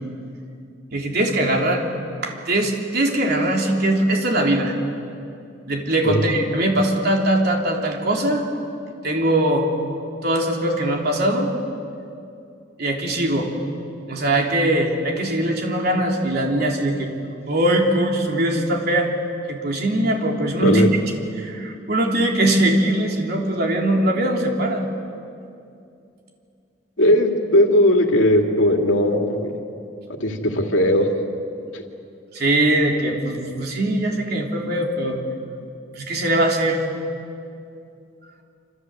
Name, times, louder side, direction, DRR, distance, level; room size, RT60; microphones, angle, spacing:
voice 1, 0.9-1.8 2.2-4.8 5.7-8.4 9.0-9.7 10.2-11.5 12.8-13.5 14.1-17.1 17.5-19.1 19.5-21.0 21.4-24.9 32.3-35.2 36.0-36.9, right 1 dB, 55° right, 0 dB, 3.7 m, -21 dB
voice 2, 27.0-29.5 30.1-31.1 31.7-31.8, left 1 dB, 90° left, 3 dB, 2.5 m, -18 dB
27.0 x 27.0 x 8.1 m, 2.6 s
head